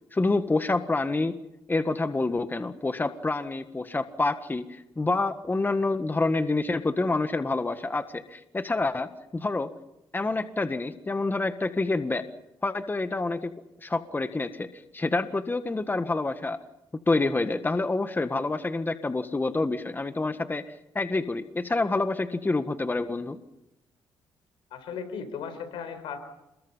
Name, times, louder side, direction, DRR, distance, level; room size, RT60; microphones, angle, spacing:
voice 1, 0.1-1.4 1.7-9.7 10.1-12.3 12.6-13.5 13.8-16.6 17.1-23.4, left 3 dB, 20° left, 9 dB, 1.6 m, -27 dB
voice 2, 24.7-26.2, left 6 dB, 85° left, 10 dB, 4.4 m, -36 dB
29.0 x 21.5 x 5.6 m, 0.90 s
cardioid pair, 70°, 9 cm